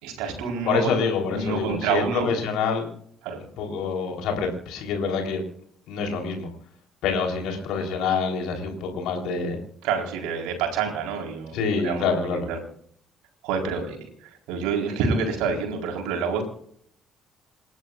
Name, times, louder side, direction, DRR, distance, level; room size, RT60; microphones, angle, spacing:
voice 1, 0.0-1.0 1.2-2.3 3.2-3.4 9.8-12.6 13.4-16.4, right 5 dB, 70° right, 2 dB, 4.2 m, -28 dB
voice 2, 0.7-2.9 3.6-5.4 5.9-6.5 7.0-9.6 11.5-12.5, left 5 dB, 65° left, 2 dB, 3.8 m, -26 dB
28.0 x 12.5 x 2.5 m, 0.64 s
hypercardioid pair, 50°, 0 cm